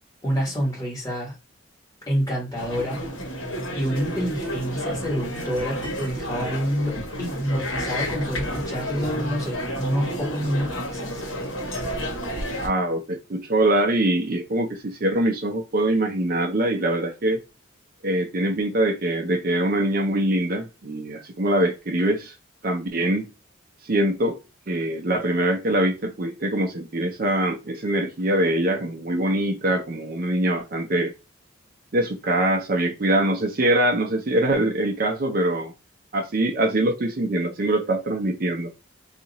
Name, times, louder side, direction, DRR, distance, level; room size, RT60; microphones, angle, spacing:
voice 1, 0.2-1.3 2.1-3.0 3.7-11.2, equal, 15° left, 1.5 m, -27 dB
sound 1, 2.6-12.7, equal, 75° left, 1.4 m, -31 dB
voice 2, 12.6-17.4 18.0-22.3 22.6-23.3 23.8-24.4 24.7-31.1 31.9-35.7 36.1-38.7, right 1 dB, 45° right, 0.5 m, -23 dB
2.8 x 2.4 x 4.0 m
head